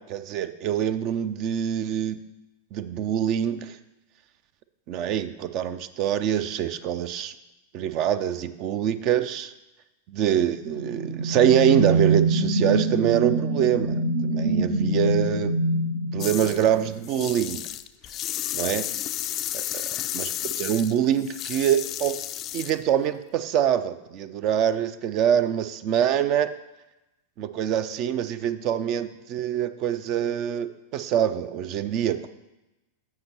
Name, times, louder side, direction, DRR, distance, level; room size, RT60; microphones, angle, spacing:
voice 1, 0.0-2.2 2.7-3.8 4.9-7.3 7.7-9.5 10.1-15.5 16.1-17.6 18.5-18.9 19.5-22.2 22.5-26.5 27.4-32.3, right 10 dB, 40° right, 13 dB, 0.5 m, -25 dB
sound 1, 10.5-17.1, right 2 dB, 70° right, 0.8 m, -25 dB
sound 2, 16.2-16.7 17.0-22.8, left 13 dB, 35° left, 0.3 m, -32 dB
15.0 x 5.8 x 3.0 m, 0.98 s
figure-of-eight pair, 90°, 0 cm